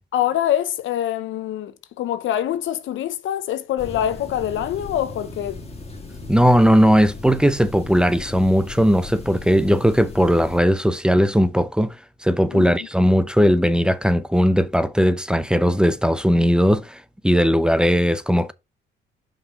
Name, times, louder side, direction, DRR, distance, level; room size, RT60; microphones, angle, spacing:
voice 1, 0.1-5.6 12.5-12.7, left 11 dB, 75° left, 0.8 m, -25 dB
sound 1, 3.8-10.6, left 2 dB, 30° left, 1.8 m, -37 dB
voice 2, 6.3-12.0 12.2-18.5, equal, 5° right, 0.6 m, -18 dB
5.7 x 4.9 x 4.6 m
cardioid pair, 90°, 20 cm